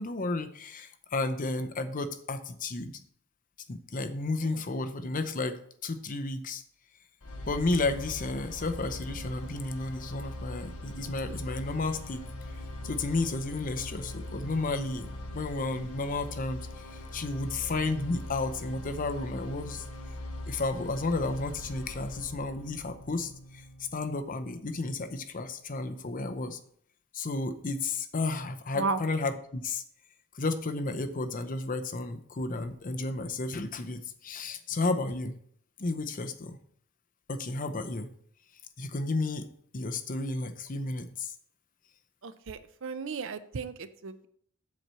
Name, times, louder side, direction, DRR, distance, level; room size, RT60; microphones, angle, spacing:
voice 1, 0.0-2.9 3.7-6.6 7.5-12.2 12.8-15.1 15.3-19.9 20.5-23.6 23.9-26.6 27.1-29.8 30.3-35.4 35.8-36.6 37.3-38.1 38.8-39.5 39.7-41.3, left 3 dB, 40° left, 8 dB, 0.6 m, -32 dB
sound 1, 7.2-25.2, left 1 dB, 80° left, 1.1 m, -41 dB
voice 2, 42.2-44.3, right 4 dB, 60° right, 12 dB, 0.6 m, -34 dB
7.3 x 4.4 x 6.7 m, 0.63 s
head